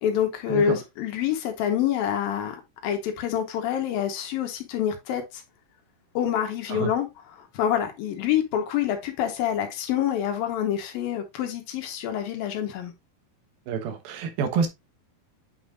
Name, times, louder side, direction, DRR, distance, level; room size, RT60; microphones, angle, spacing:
voice 1, 0.0-5.4 6.1-7.1 7.4-12.9, left 9 dB, 80° left, 2.9 m, -27 dB
voice 2, 13.7-14.7, right 6 dB, 85° right, 2.9 m, -27 dB
8.5 x 5.4 x 2.5 m
omnidirectional pair, 4.1 m